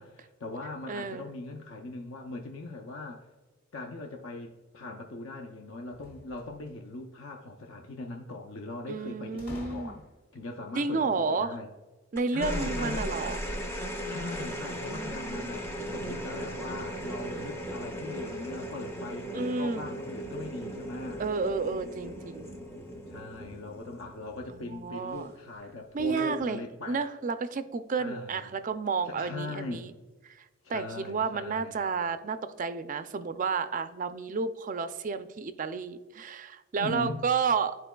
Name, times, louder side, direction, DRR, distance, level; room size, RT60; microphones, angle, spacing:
voice 1, 0.0-3.2 3.7-10.0 10.3-11.7 12.3-13.1 14.1-21.2 23.1-27.0 28.0-28.6 29.0-29.9 30.6-31.9 36.8-37.2, left 2 dB, 60° left, 2 dB, 0.6 m, -40 dB
voice 2, 0.9-1.3 8.9-9.9 10.8-11.6 12.1-13.4 14.9-15.6 15.8-16.0 19.3-19.8 21.2-22.5 24.7-25.3 25.9-26.6 26.9-29.9 30.3-30.4 30.7-37.8, right 4 dB, 35° right, 11 dB, 0.4 m, -31 dB
sound 1, 5.9-6.9 9.4-10.4, equal, 40° left, 2.0 m, -47 dB
sound 2, 12.2-24.8 26.0-26.4, equal, 10° left, 0.5 m, -37 dB
sound 3, 15.1-23.6, left 1 dB, 80° left, 1.3 m, -52 dB
12.5 x 4.5 x 2.2 m, 1.2 s
head